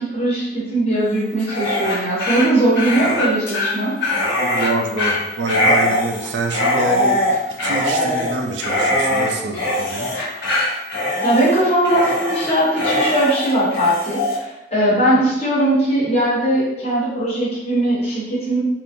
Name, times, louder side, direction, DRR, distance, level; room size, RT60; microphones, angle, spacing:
voice 1, 0.0-4.0 11.2-18.6, right 1 dB, 35° left, -7 dB, 1.1 m, -19 dB
Dog, 1.4-14.4, left 1 dB, 65° left, 0.9 m, -21 dB
voice 2, 4.4-7.2 7.6-10.1, right 3 dB, 70° right, 3 dB, 0.5 m, -25 dB
3.6 x 2.5 x 2.6 m, 0.91 s
head